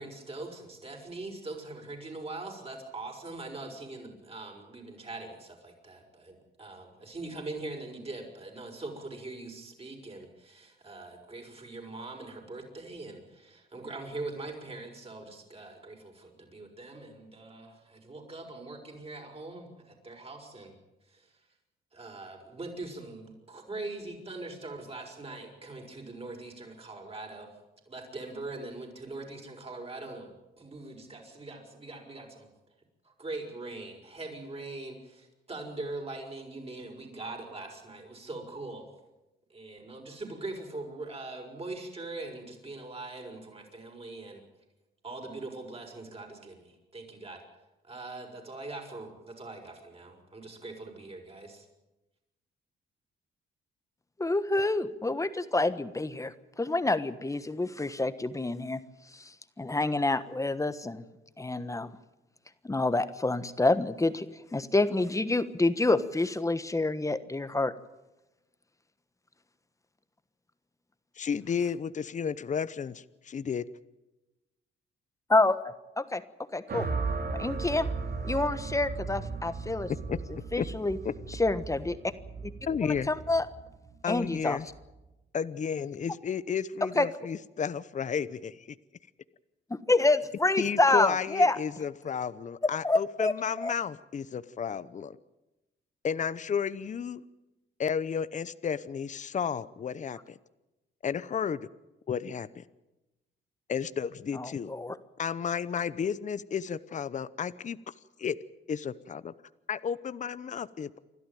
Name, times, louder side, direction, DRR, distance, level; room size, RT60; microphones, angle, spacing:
voice 1, 0.0-20.7 21.1-21.3 21.9-27.5 27.9-32.5 33.0-38.8 39.5-44.4 45.0-47.4 47.8-51.7, right 2 dB, 30° right, 2 dB, 6.2 m, -42 dB
voice 2, 54.2-58.8 59.1-59.2 59.6-61.0 61.4-61.9 62.6-64.3 64.5-67.7 75.3-75.6 76.0-76.2 76.5-76.9 77.3-77.9 78.2-79.9 80.5-81.0 81.4-82.0 82.8-83.5 84.1-84.6 86.8-87.1 89.7-91.6 92.8-93.7 104.3-104.9, left 2 dB, 15° left, 12 dB, 1.3 m, -27 dB
voice 3, 71.2-73.6 80.1-80.2 80.6-80.7 81.0-81.1 82.7-83.1 84.0-84.7 85.3-88.8 90.6-95.2 96.0-97.2 97.8-100.4 101.0-101.7 102.1-102.6 103.7-104.7 105.2-107.9 108.2-108.4 108.7-109.3 109.7-111.0, left 7 dB, 40° left, 16 dB, 0.8 m, -32 dB
sound 1, 76.7-84.9, right 4 dB, 50° right, 2.5 m, -36 dB
28.0 x 12.5 x 9.2 m, 1.0 s
cardioid pair, 90°, 20 cm